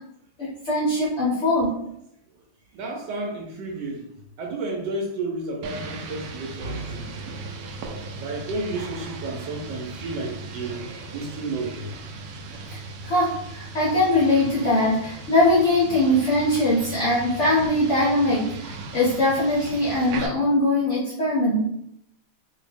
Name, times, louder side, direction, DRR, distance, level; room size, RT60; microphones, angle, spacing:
voice 1, 0.4-1.8 12.7-21.6, left 1 dB, 55° left, -7 dB, 0.8 m, -21 dB
voice 2, 2.7-4.0 4.4-7.1 7.8-10.8 11.1-11.9, right 2 dB, 70° right, 0 dB, 1.1 m, -32 dB
sound 1, 5.6-20.3, right 3 dB, 90° right, 0.8 m, -37 dB
2.8 x 2.6 x 3.3 m, 0.78 s
omnidirectional pair, 2.2 m